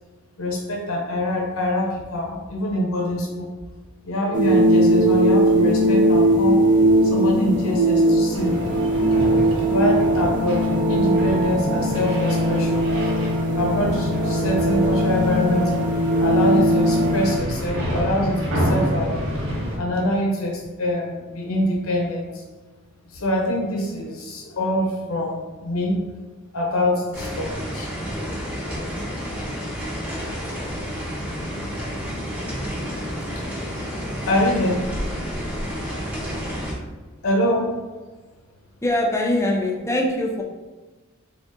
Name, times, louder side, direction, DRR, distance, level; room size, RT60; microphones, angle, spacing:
voice 1, 0.4-3.5 4.0-6.6 7.0-8.7 9.7-12.9 13.5-15.7 16.2-19.2 19.8-22.4 23.1-26.0 26.5-27.9 34.3-34.9 37.2-37.8, left 1 dB, 80° left, -1 dB, 0.7 m, -24 dB
sound 1, 4.3-17.4, right 1 dB, 40° right, 0.6 m, -19 dB
sound 2, 8.3-19.8, equal, 70° right, 0.9 m, -29 dB
sound 3, 27.1-36.7, equal, 5° right, 0.9 m, -30 dB
voice 2, 38.8-40.4, left 1 dB, 15° left, 0 dB, 0.4 m, -22 dB
3.8 x 3.4 x 2.6 m, 1.2 s
head